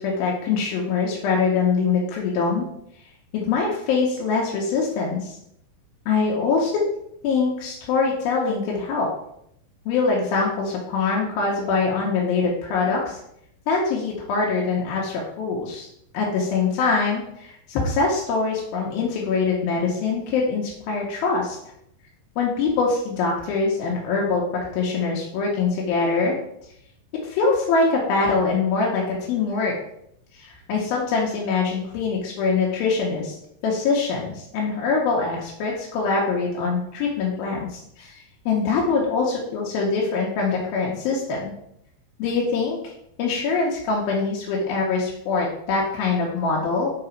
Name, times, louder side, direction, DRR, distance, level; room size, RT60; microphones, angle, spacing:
voice 1, 0.0-2.7 3.3-5.3 6.1-6.7 7.2-9.1 9.9-13.2 13.7-15.9 16.1-21.6 22.4-26.4 27.2-29.7 30.3-33.3 33.6-41.5 42.2-42.8 43.2-46.9, left 4 dB, 85° left, -3 dB, 2.8 m, -23 dB
5.9 x 3.8 x 4.5 m, 0.74 s
omnidirectional pair, 4.2 m